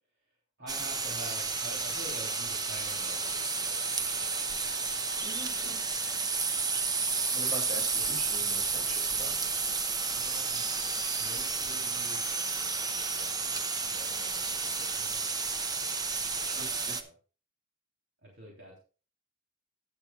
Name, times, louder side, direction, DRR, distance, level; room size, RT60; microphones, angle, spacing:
voice 1, 0.6-4.9 8.7-8.9 10.1-10.7 11.2-12.2 12.9-15.2 16.3-17.1 18.2-18.8, right 1 dB, 60° right, -2 dB, 3.1 m, -48 dB
sound 1, 0.7-17.0, right 4 dB, 20° right, 0.8 m, -31 dB
voice 2, 5.2-5.8 7.3-9.3 16.5-17.0, right 1 dB, 35° right, 0 dB, 4.4 m, -43 dB
18.5 x 6.9 x 2.3 m, 0.35 s
head